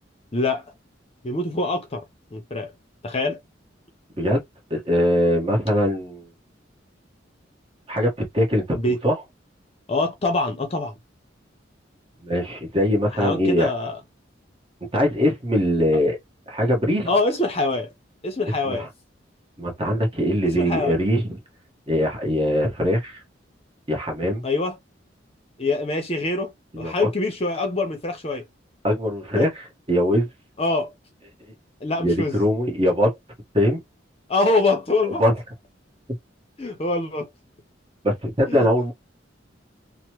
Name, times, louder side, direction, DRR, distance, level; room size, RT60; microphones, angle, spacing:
voice 1, 0.3-0.7 1.2-2.0 2.3-2.7 3.0-3.4 8.7-9.0 9.9-10.9 13.1-14.0 17.1-17.9 18.2-18.9 20.4-21.0 24.4-24.8 25.6-26.5 26.8-28.5 29.4-29.5 30.6-30.9 31.8-32.4 34.3-35.2 36.6-37.3 38.5-38.7, left 2 dB, 30° left, 0.7 m, -24 dB
voice 2, 4.7-6.2 7.9-9.1 12.2-13.7 14.9-16.2 16.5-17.1 18.6-18.9 19.6-21.4 21.9-23.2 23.9-24.4 26.7-27.1 28.8-30.3 32.0-33.1 33.5-33.8 35.1-35.3 38.0-38.9, equal, 30° right, 1.1 m, -22 dB
3.0 x 2.1 x 3.0 m
head